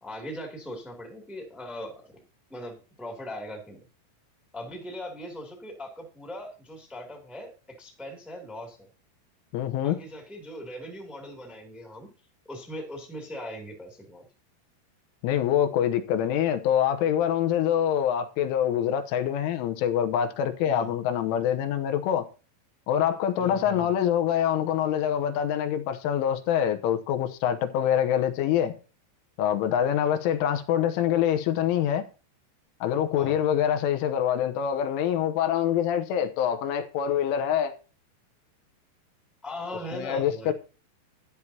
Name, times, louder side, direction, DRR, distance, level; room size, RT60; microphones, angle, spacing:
voice 1, 0.0-2.2 2.5-3.8 4.5-8.8 9.8-12.1 12.4-14.2 20.6-20.9 23.4-23.9 33.2-33.4 39.4-40.5, equal, ahead, 0.8 m, -40 dB
voice 2, 9.5-10.0 15.2-22.3 22.9-28.7 29.4-32.1 32.8-37.8 39.9-40.5, left 9 dB, 85° left, 3.5 m, -25 dB
13.0 x 11.0 x 2.9 m
omnidirectional pair, 5.5 m